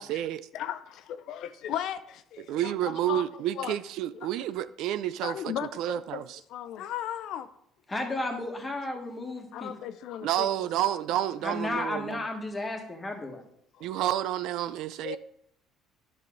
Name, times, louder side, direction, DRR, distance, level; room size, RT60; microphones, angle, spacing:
voice 1, 0.0-0.4 2.4-5.3 5.8-6.4 10.2-12.2 13.8-15.2, right 12 dB, 70° right, 0.4 m, -30 dB
voice 2, 0.5-3.2 3.5-3.7 5.2-6.2 6.5-7.5 9.5-10.5 12.2-12.3 13.8-14.0 15.0-15.2, left 10 dB, 65° left, 0.5 m, -36 dB
voice 3, 7.9-9.7 11.4-13.4, left 2 dB, 15° left, 1.6 m, -33 dB
11.0 x 5.5 x 3.8 m
cardioid pair, 145°, 0 cm